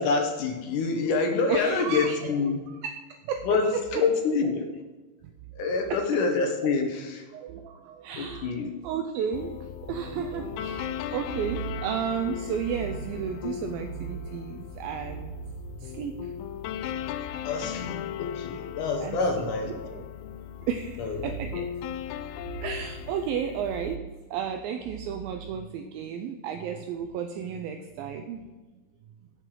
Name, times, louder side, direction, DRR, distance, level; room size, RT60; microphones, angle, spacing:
voice 1, 0.0-2.6 3.5-4.6 5.5-7.3 8.2-8.7 17.4-19.7 21.0-21.4, left 4 dB, 70° left, 4 dB, 2.0 m, -27 dB
voice 2, 1.5-2.2 2.7-2.9 3.2-4.0 5.2-5.3 5.9-6.0 7.3-8.5 8.8-15.3 15.8-16.3 19.0-20.0 20.6-21.7 22.6-24.1 24.3-28.5, right 7 dB, 80° right, 6 dB, 2.2 m, -33 dB
sound 1, 9.3-24.0, left 10 dB, 85° left, 2.6 m, -37 dB
17.0 x 5.9 x 3.7 m, 1.2 s
omnidirectional pair, 4.5 m